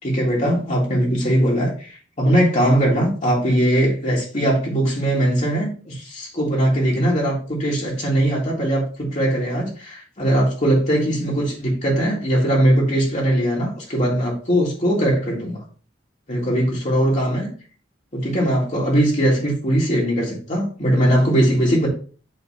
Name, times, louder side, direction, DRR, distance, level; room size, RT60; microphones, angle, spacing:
voice 1, 0.0-15.6 16.3-17.5 18.1-21.9, right 1 dB, 40° left, -4 dB, 1.9 m, -20 dB
8.0 x 3.3 x 4.2 m, 0.39 s
head